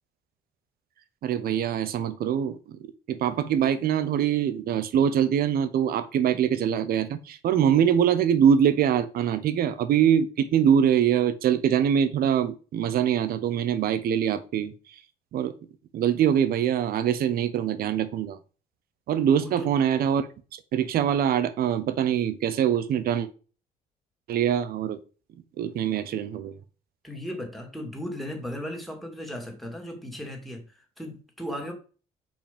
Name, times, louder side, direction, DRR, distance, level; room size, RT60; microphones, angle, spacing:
voice 1, 1.2-2.8 3.1-14.7 15.3-15.5 15.9-18.4 19.1-20.3 20.7-23.3 24.3-25.0 25.6-26.5, right 9 dB, 65° right, 1.0 m, -23 dB
voice 2, 19.4-19.7 27.0-31.7, equal, ahead, 2.3 m, -36 dB
5.3 x 5.3 x 5.2 m
cardioid pair, 110°, 17 cm